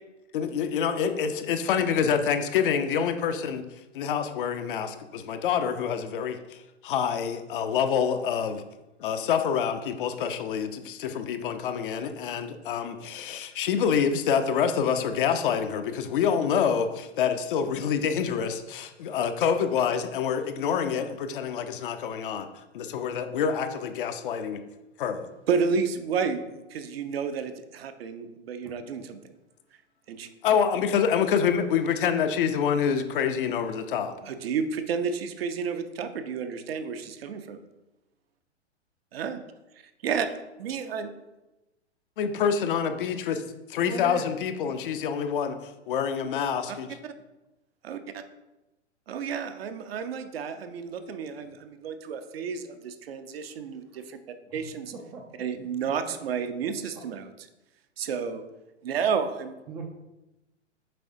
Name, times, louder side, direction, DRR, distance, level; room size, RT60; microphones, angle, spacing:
voice 1, 0.3-8.6 9.0-24.6 25.0-25.3 30.4-34.1 42.2-47.0, left 7 dB, 50° left, 8 dB, 0.6 m, -27 dB
voice 2, 25.5-29.2 30.1-30.3 34.2-37.6 39.1-39.4 40.0-40.3 40.6-41.1 47.8-48.2 49.1-54.2 54.5-54.9 55.4-57.3 58.0-58.4 58.8-59.5, right 6 dB, 55° right, 8 dB, 0.7 m, -31 dB
voice 3, 28.6-29.1 43.8-44.3 49.5-49.7 53.5-53.6 53.9-54.0 54.5-54.6 54.9-55.2 59.7-59.8, right 3 dB, 15° right, -1 dB, 0.4 m, -40 dB
7.5 x 4.8 x 2.6 m, 1.0 s
figure-of-eight pair, 110°, 35 cm